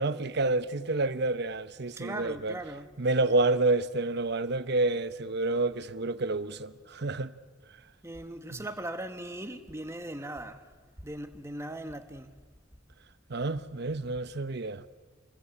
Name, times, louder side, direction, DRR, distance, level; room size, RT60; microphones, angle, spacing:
voice 1, 0.0-2.5 3.0-7.3 8.5-8.6 13.3-14.8, right 2 dB, 60° right, 1.0 m, -29 dB
voice 2, 2.0-2.9 8.0-10.7 11.0-12.3, right 1 dB, 15° right, 1.6 m, -39 dB
27.5 x 20.5 x 8.5 m
head